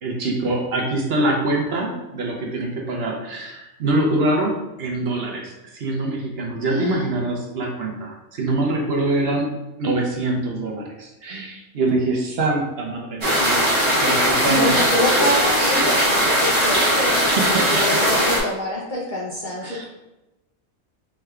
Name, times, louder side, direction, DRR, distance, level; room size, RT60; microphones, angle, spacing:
voice 1, 0.0-9.5 9.8-14.7 16.2-17.7 19.6-19.9, right 2 dB, 55° right, 0 dB, 0.8 m, -25 dB
voice 2, 6.6-7.1 14.4-19.9, equal, 45° left, -6 dB, 0.7 m, -26 dB
sound 1, 13.2-18.4, equal, 20° right, 1.2 m, -19 dB
4.7 x 3.2 x 2.3 m, 0.99 s
omnidirectional pair, 1.4 m